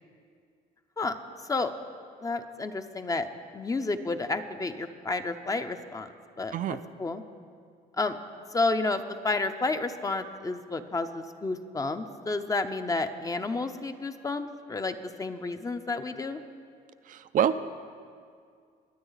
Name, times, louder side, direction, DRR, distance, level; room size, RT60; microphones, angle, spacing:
voice 1, 2.2-3.3 3.5-6.1 6.4-6.5 7.0-7.2 8.0-8.2 8.5-16.4, left 3 dB, 20° left, 8 dB, 0.7 m, -30 dB
voice 2, 17.1-17.6, right 9 dB, 50° right, 10 dB, 0.5 m, -26 dB
23.0 x 9.0 x 4.0 m, 2.2 s
cardioid pair, 110°, 17 cm